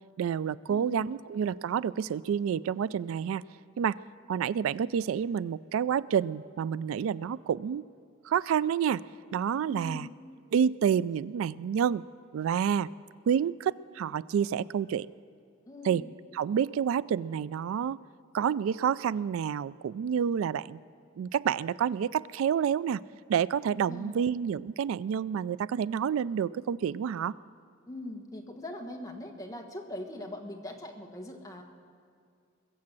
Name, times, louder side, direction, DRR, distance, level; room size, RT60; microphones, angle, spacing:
voice 1, 0.2-3.4 3.8-4.0 4.3-7.8 8.2-9.0 9.3-10.1 10.5-12.0 12.3-12.9 13.3-15.1 15.8-16.0 16.3-18.0 18.3-20.8 21.2-23.0 23.3-27.3, right 8 dB, 85° right, 20 dB, 0.3 m, -28 dB
voice 2, 0.7-1.1 9.7-10.1 15.7-16.1 23.9-24.3 27.9-31.6, left 1 dB, 15° left, 2 dB, 1.4 m, -41 dB
21.0 x 7.6 x 7.5 m, 2.3 s
head